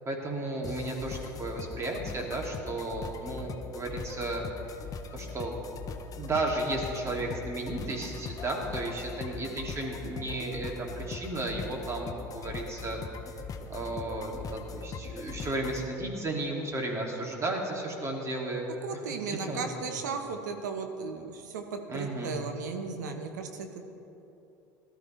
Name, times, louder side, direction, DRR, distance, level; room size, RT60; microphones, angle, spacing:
voice 1, 0.0-4.4 5.1-5.5 6.2-13.0 13.7-18.6 18.9-19.6 19.9-20.0 21.9-22.4, right 2 dB, 30° right, 0 dB, 2.9 m, -34 dB
sound 1, 0.6-15.9, left 5 dB, 40° left, 0.9 m, -41 dB
voice 2, 18.8-23.8, right 4 dB, 80° right, 5 dB, 1.3 m, -36 dB
18.0 x 13.0 x 3.5 m, 3.0 s
hypercardioid pair, 75°, 10 cm